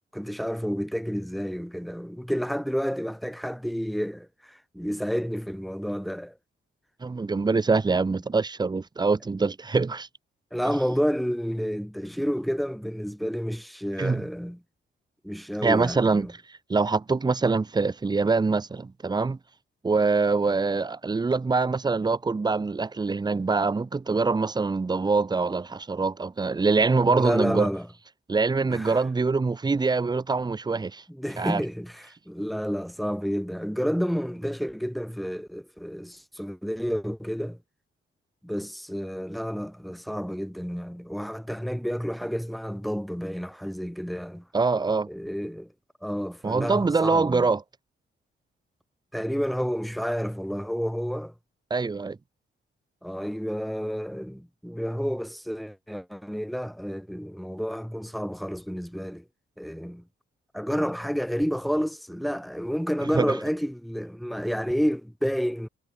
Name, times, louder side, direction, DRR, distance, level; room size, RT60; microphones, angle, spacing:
voice 1, 0.1-6.3 10.5-14.6 15.2-16.3 27.0-27.9 28.7-29.0 31.1-37.6 38.4-44.4 45.1-45.7 46.0-47.5 49.1-51.3 53.0-59.2 59.6-60.0 60.5-65.7, equal, ahead, 3.2 m, -30 dB
voice 2, 7.0-10.1 14.0-14.3 15.6-16.3 16.7-19.4 19.8-27.7 28.3-31.0 31.4-31.6 44.5-45.1 46.4-47.6 51.7-52.2 63.1-63.3, right 4 dB, 20° right, 0.7 m, -24 dB
cardioid pair, 105°, 21 cm